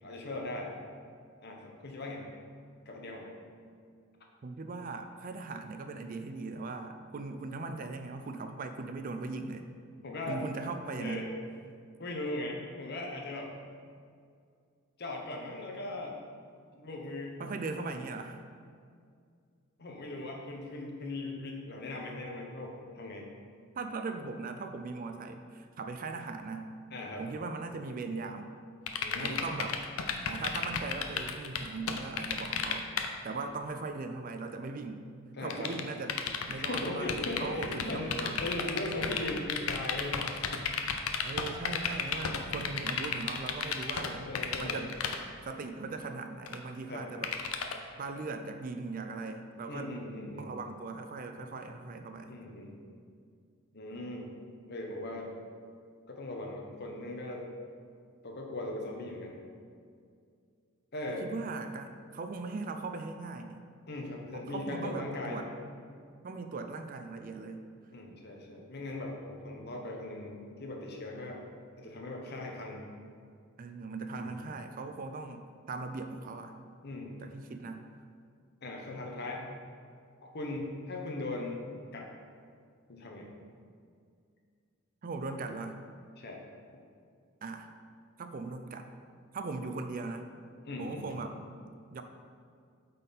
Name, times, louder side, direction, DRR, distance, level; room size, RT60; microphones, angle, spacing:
voice 1, 0.0-0.7 1.4-2.2 2.9-3.3 10.0-10.4 11.0-11.3 12.0-13.5 15.0-16.2 16.7-17.4 19.8-23.3 26.9-27.3 29.0-29.4 35.3-35.7 36.7-40.3 44.0-44.8 46.9-47.1 49.7-50.5 52.3-52.8 53.7-54.3 54.7-55.3 56.1-57.5 58.2-59.4 60.9-61.3 63.9-65.5 67.9-71.4 71.8-72.9 74.1-74.4 76.8-77.2 78.6-79.5 80.2-82.1 82.9-83.3 86.2-86.4 90.6-91.2, left 2 dB, 50° left, 0 dB, 1.0 m, -39 dB
voice 2, 4.4-9.7 10.3-11.3 17.4-18.4 23.8-26.7 27.2-28.6 29.2-29.8 30.3-32.9 33.2-35.1 35.4-36.1 36.5-38.4 39.0-39.2 41.2-44.2 44.6-44.9 45.5-47.3 48.0-49.9 50.4-52.3 61.2-63.7 64.3-65.5 66.2-67.6 73.6-76.6 77.2-77.8 85.0-85.8 87.4-87.7 88.2-88.9 89.3-90.3 90.8-91.4 91.9-92.0, right 3 dB, 40° right, 7 dB, 0.4 m, -39 dB
sound 1, 28.9-33.1 35.5-44.1 44.3-45.2 46.5-46.6 47.2-47.7, left 7 dB, 75° left, 0.6 m, -32 dB
8.7 x 4.2 x 4.1 m, 2.2 s
head